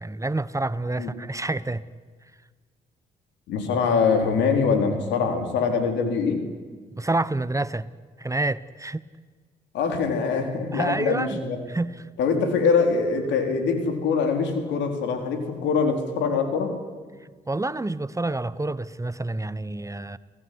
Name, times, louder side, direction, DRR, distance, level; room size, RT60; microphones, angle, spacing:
voice 1, 0.0-1.8 6.9-7.9 8.2-9.0 10.7-11.4 11.7-12.0 17.5-20.2, right 2 dB, 15° right, 16 dB, 1.1 m, -28 dB
voice 2, 3.5-6.4 9.7-11.6 12.2-16.7, left 5 dB, 80° left, 5 dB, 4.5 m, -23 dB
29.5 x 17.5 x 9.7 m, 1.5 s
supercardioid pair, 60°, 18 cm